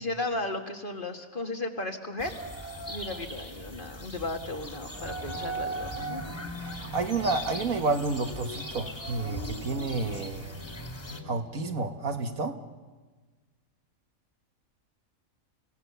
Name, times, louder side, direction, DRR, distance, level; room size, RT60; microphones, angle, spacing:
voice 1, 0.0-2.4 2.9-6.2, left 2 dB, 35° left, 4 dB, 1.9 m, -35 dB
sound 1, 2.2-11.2, right 1 dB, 20° left, 2.3 m, -38 dB
sound 2, 5.8-12.3, left 3 dB, 85° left, 7.4 m, -48 dB
voice 2, 6.9-10.6 11.2-12.6, right 3 dB, 75° right, 6 dB, 2.0 m, -30 dB
29.0 x 17.0 x 6.9 m, 1.3 s
omnidirectional pair, 1.5 m